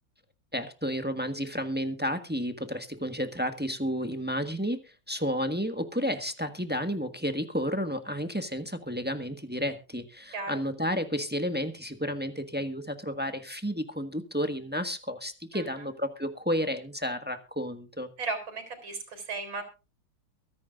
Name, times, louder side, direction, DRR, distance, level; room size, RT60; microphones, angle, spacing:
voice 1, 0.5-4.8 5.1-18.1, equal, 5° right, 7 dB, 1.1 m, -31 dB
voice 2, 10.3-10.6 15.5-15.9 18.2-19.6, right 4 dB, 65° right, 7 dB, 4.8 m, -36 dB
23.5 x 10.5 x 2.6 m, 0.31 s
omnidirectional pair, 2.3 m